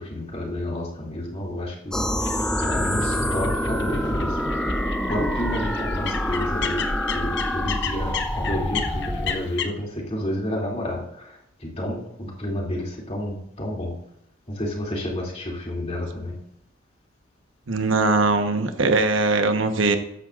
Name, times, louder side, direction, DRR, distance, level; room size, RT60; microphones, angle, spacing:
voice 1, 0.0-2.0 2.6-4.5 5.1-14.0 14.5-16.4, left 1 dB, 30° left, -2 dB, 2.7 m, -30 dB
sound 1, 1.9-9.4, equal, 5° left, 0.5 m, -26 dB
sound 2, 2.2-9.7, left 7 dB, 60° left, 0.8 m, -34 dB
voice 2, 17.7-20.0, right 3 dB, 80° right, 6 dB, 1.2 m, -21 dB
14.0 x 10.0 x 2.5 m, 0.77 s
head